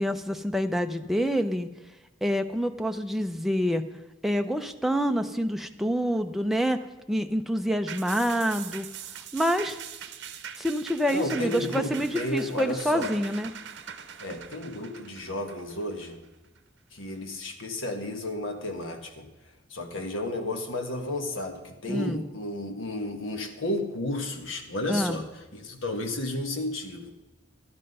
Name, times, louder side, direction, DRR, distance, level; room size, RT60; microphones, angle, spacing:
voice 1, 0.0-1.7 2.2-3.9 4.2-6.8 7.1-8.9 9.3-9.8 10.6-13.5 21.9-22.2 24.9-25.2, equal, ahead, 6 dB, 0.5 m, -27 dB
sound 1, 7.9-16.6 17.0-17.1, right 8 dB, 55° right, 0.8 m, -42 dB
voice 2, 11.1-13.1 14.2-16.2 16.9-19.2 19.7-25.2 25.5-27.1, left 1 dB, 70° left, 4 dB, 1.5 m, -32 dB
12.0 x 9.8 x 5.4 m, 1.1 s
head